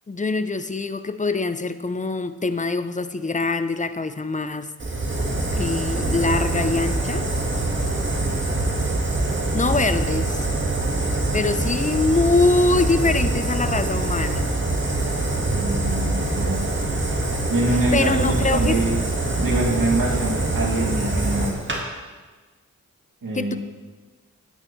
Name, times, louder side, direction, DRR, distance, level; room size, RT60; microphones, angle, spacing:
voice 1, 0.1-4.7 5.5-7.3 9.5-10.5 11.3-14.5 17.9-18.8 23.3-23.6, left 3 dB, 20° left, 12 dB, 0.5 m, -23 dB
Fire, 4.8-21.8, right 2 dB, 35° right, 1.7 m, -24 dB
voice 2, 15.5-16.6 17.5-19.0 19.3-21.5 23.2-23.6, right 2 dB, 70° right, -4 dB, 2.3 m, -25 dB
9.0 x 8.8 x 3.2 m, 1.3 s
cardioid pair, 40°, 35 cm